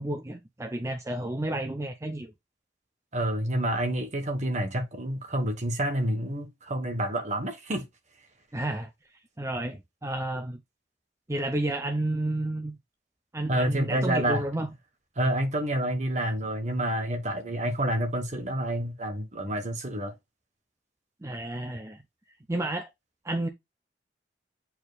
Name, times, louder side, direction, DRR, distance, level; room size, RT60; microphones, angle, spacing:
voice 1, 0.0-2.3 8.5-8.9 9.4-10.6 11.3-12.8 13.3-14.7 21.2-22.0 22.5-22.9 23.2-23.5, right 1 dB, 15° right, 0.6 m, -31 dB
voice 2, 3.1-7.9 13.5-14.4 15.2-20.1, right 1 dB, 40° right, 1.3 m, -28 dB
8.7 x 4.6 x 2.3 m
head